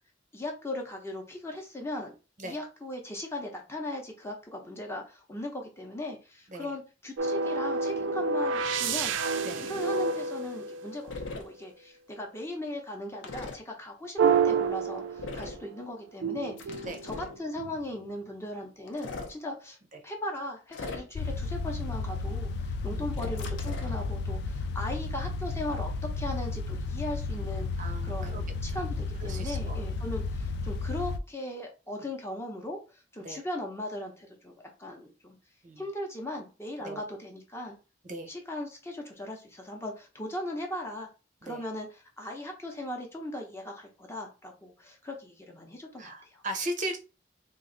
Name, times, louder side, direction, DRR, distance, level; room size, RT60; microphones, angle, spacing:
voice 1, 0.3-2.1 2.4-9.1 9.7-19.8 20.0-34.5 34.8-35.4 35.8-37.7 38.3-41.1 41.4-46.4, left 1 dB, 15° left, 1 dB, 0.7 m, -38 dB
sound 1, 7.2-11.3 14.2-15.7 16.2-18.0, right 5 dB, 80° right, 0.4 m, -29 dB
sound 2, 11.1-11.4 13.2-13.6 15.2-15.6 16.6-17.4 18.9-19.3 20.7-21.3 23.1-24.0, left 3 dB, 90° left, 0.7 m, -39 dB
sound 3, 21.1-31.2, left 3 dB, 60° left, 0.3 m, -33 dB
voice 2, 22.9-23.2 27.8-28.4 28.7-28.8 29.2-29.8 33.2-33.4 35.6-35.8 36.8-37.0 38.0-38.3 41.4-41.6 46.0-47.0, right 1 dB, 40° right, 4 dB, 0.7 m, -38 dB
3.0 x 2.5 x 3.8 m, 0.32 s
head